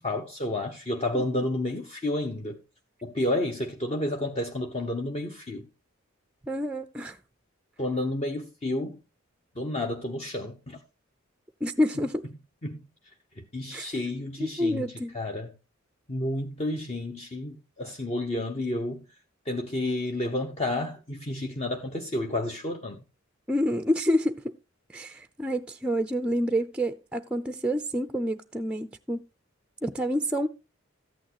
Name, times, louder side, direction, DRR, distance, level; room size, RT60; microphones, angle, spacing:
voice 1, 0.0-2.6 3.0-5.7 7.8-9.0 9.5-10.8 12.6-14.8 15.1-15.5 16.1-19.1 19.4-23.0, left 1 dB, 30° left, 0.9 m, -31 dB
voice 2, 6.5-7.2 11.6-12.3 13.7-13.9 14.4-15.2 23.5-24.5 24.9-29.2 29.8-30.5, equal, 5° right, 0.5 m, -28 dB
13.5 x 9.0 x 2.9 m
head